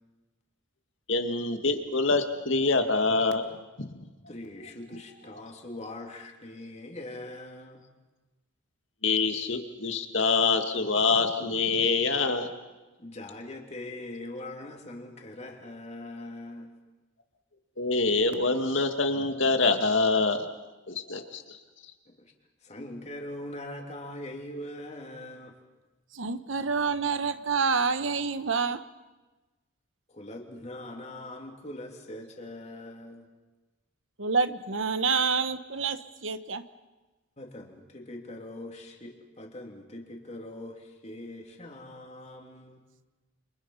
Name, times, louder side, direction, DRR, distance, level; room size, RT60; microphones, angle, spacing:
voice 1, 1.1-3.5 3.9-4.0 9.0-12.5 17.8-20.5 20.9-21.6, left 3 dB, 70° left, 6 dB, 2.2 m, -25 dB
voice 2, 4.3-7.8 13.0-16.7 22.1-22.3 22.6-25.5 30.1-33.3 37.4-42.8, left 1 dB, 35° left, 2 dB, 3.2 m, -42 dB
voice 3, 26.1-28.8 34.2-36.6, right 5 dB, 75° right, 11 dB, 1.2 m, -27 dB
28.5 x 27.0 x 5.7 m, 1.2 s
head